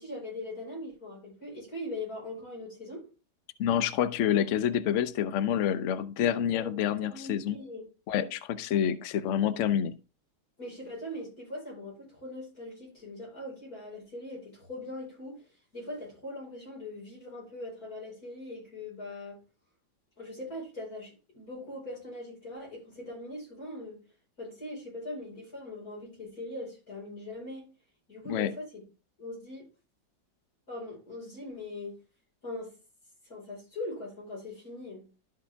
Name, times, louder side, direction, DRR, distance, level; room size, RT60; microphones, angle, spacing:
voice 1, 0.0-3.0 6.5-6.7 7.0-7.8 10.6-15.4 15.7-19.4 20.2-24.0 24.4-27.7 28.1-28.8 29.2-29.7 30.7-32.0 32.4-32.8 33.2-35.1, left 1 dB, 55° left, 5.3 m, -41 dB
voice 2, 3.6-7.6 8.1-9.9 28.3-28.5, left 9 dB, 75° left, 0.6 m, -28 dB
12.5 x 4.8 x 3.4 m
omnidirectional pair, 1.9 m